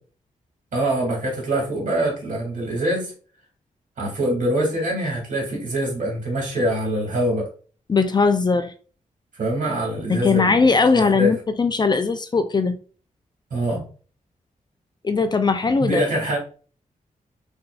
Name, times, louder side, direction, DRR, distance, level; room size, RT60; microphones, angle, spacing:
voice 1, 0.7-3.1 4.0-7.5 9.3-10.7 11.1-11.3 13.5-13.8 15.8-16.4, right 1 dB, 65° right, 1.9 m, -24 dB
voice 2, 7.9-8.7 10.1-12.8 15.0-16.0, left 4 dB, 30° left, 0.4 m, -19 dB
5.6 x 2.7 x 2.3 m
wide cardioid pair, 110°, 14 cm